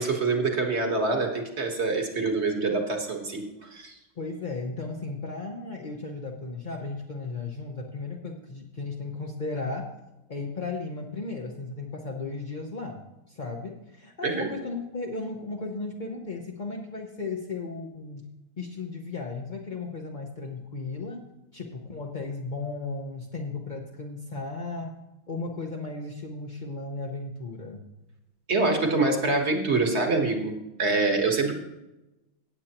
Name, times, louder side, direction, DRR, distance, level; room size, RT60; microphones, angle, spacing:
voice 1, 0.0-3.4 3.7-3.9 14.2-14.5 28.5-30.5 30.8-31.5, right 3 dB, 35° right, 3 dB, 1.5 m, -25 dB
voice 2, 4.2-9.9 10.3-13.0 13.3-18.2 18.6-21.3 21.5-24.9 25.3-27.8, left 3 dB, 45° left, -1 dB, 0.5 m, -35 dB
17.5 x 8.2 x 2.9 m, 0.98 s
omnidirectional pair, 2.3 m